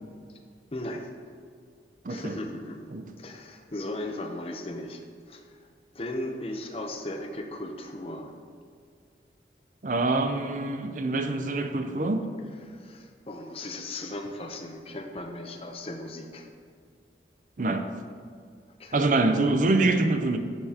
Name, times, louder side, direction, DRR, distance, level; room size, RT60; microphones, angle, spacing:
voice 1, 0.7-1.1 2.1-2.9 3.2-5.0 5.3-5.4 5.9-8.3 12.8-16.4 18.8-18.9, left 1 dB, 35° left, 4 dB, 0.7 m, -36 dB
voice 2, 2.0-2.4 2.9-3.1 9.8-12.3 17.6-17.8 18.9-20.4, right 2 dB, 45° right, 7 dB, 0.5 m, -25 dB
12.5 x 6.9 x 2.9 m, 2.1 s
head